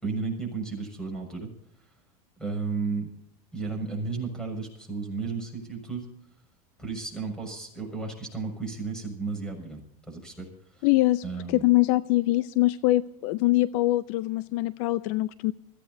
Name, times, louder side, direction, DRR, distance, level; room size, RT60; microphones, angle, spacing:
voice 1, 0.0-1.5 1.8-1.9 2.4-3.1 3.5-6.1 6.8-10.9 11.2-11.7, right 4 dB, 5° left, 3 dB, 6.4 m, -33 dB
voice 2, 10.8-11.2 11.5-15.5, left 18 dB, 60° left, 16 dB, 0.5 m, -23 dB
25.5 x 15.5 x 2.7 m, 0.72 s
supercardioid pair, 130°, 20 cm